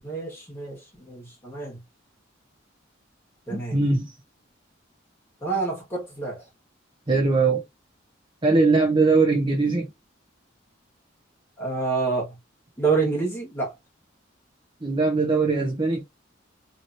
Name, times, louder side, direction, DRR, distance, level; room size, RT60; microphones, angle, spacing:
voice 1, 0.0-1.8 3.5-3.8 5.4-6.4 11.6-12.3 12.8-13.7, right 4 dB, 10° left, 1.4 m, -27 dB
voice 2, 3.5-4.1 7.1-7.6 8.4-9.9 14.8-16.0, right 3 dB, 25° right, 0.8 m, -21 dB
3.0 x 2.8 x 2.6 m
head